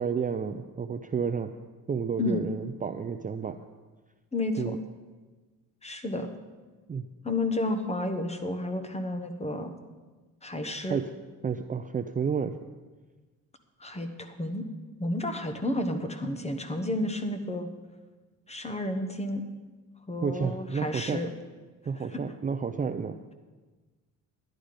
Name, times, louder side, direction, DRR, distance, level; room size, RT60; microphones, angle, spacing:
voice 1, 0.0-1.5 1.9-3.6 4.6-4.8 6.9-7.1 10.9-11.1 11.4-12.7 20.2-21.2 21.9-23.2, right 6 dB, 25° right, 7 dB, 0.4 m, -31 dB
voice 2, 4.3-4.8 5.8-6.3 7.2-9.7 10.4-11.0 13.8-14.6 15.0-17.7 18.5-19.4 20.1-21.3 22.1-22.2, left 1 dB, 20° left, 7 dB, 1.1 m, -31 dB
11.5 x 10.5 x 5.1 m, 1.3 s
cardioid pair, 110°, 35 cm